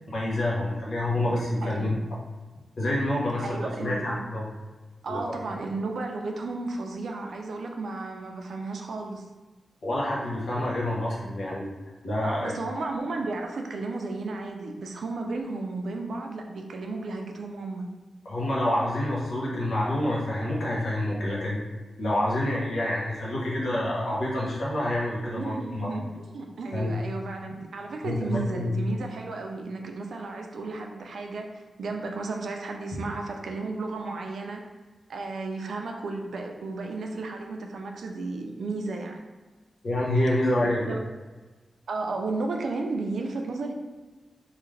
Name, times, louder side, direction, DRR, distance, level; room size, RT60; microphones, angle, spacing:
voice 1, 0.1-1.9 2.8-4.4 5.1-5.2 9.8-11.7 12.0-12.5 18.2-21.6 22.0-25.9 26.7-26.9 28.0-28.7 39.8-40.9, left 1 dB, 65° left, -5 dB, 0.9 m, -27 dB
voice 2, 1.6-2.0 3.4-4.2 5.0-9.3 12.2-17.9 25.4-34.6 35.1-39.2 40.9-41.0 41.9-43.7, right 3 dB, 80° right, 3 dB, 0.4 m, -33 dB
2.6 x 2.4 x 3.2 m, 1.3 s
wide cardioid pair, 140°, 0 cm